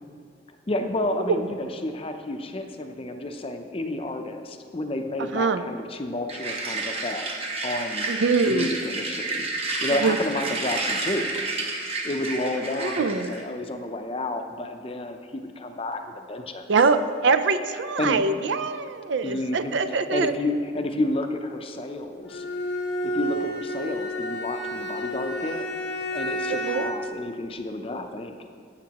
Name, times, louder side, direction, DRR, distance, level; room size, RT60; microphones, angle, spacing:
voice 1, 0.7-8.1 8.5-9.5 9.8-11.5 12.0-16.6 18.0-18.2 19.2-22.4 23.0-25.7 26.1-28.4, left 2 dB, 30° left, 6 dB, 0.5 m, -30 dB
sound 1, 6.3-13.4, right 3 dB, 30° right, 1.0 m, -30 dB
voice 2, 8.1-8.8 10.0-10.2 12.8-13.4 16.7-20.3 26.5-26.9, right 4 dB, 70° right, 11 dB, 0.4 m, -23 dB
Bowed string instrument, 22.3-27.1, equal, 65° left, 0.8 m, -30 dB
13.0 x 8.4 x 2.9 m, 2.2 s
head